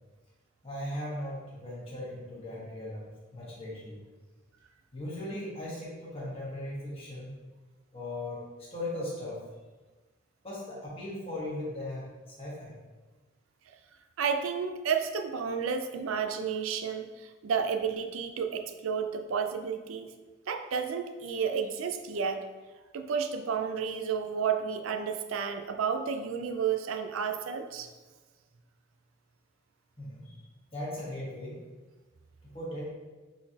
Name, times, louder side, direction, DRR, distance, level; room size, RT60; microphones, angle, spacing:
voice 1, 0.6-4.0 4.9-7.3 7.9-8.5 8.7-9.4 10.4-12.7 30.0-30.4 30.7-31.6 32.5-32.9, left 1 dB, 30° left, -7 dB, 1.4 m, -38 dB
voice 2, 14.2-20.1 20.5-22.4 22.9-27.9, right 6 dB, 85° right, 7 dB, 0.4 m, -31 dB
4.2 x 3.9 x 2.8 m, 1.2 s
head